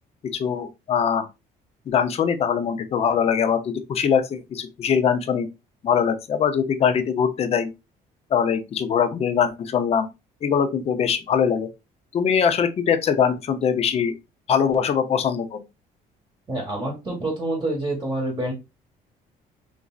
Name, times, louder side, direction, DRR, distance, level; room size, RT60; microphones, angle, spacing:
voice 1, 0.2-1.3 1.9-5.5 5.8-7.7 8.3-10.1 10.4-11.7 12.1-14.1 14.5-15.6, left 7 dB, 35° left, 0.5 m, -22 dB
voice 2, 16.5-18.5, right 1 dB, 20° right, 1.0 m, -27 dB
3.0 x 2.5 x 2.2 m
cardioid pair, 110°, 17 cm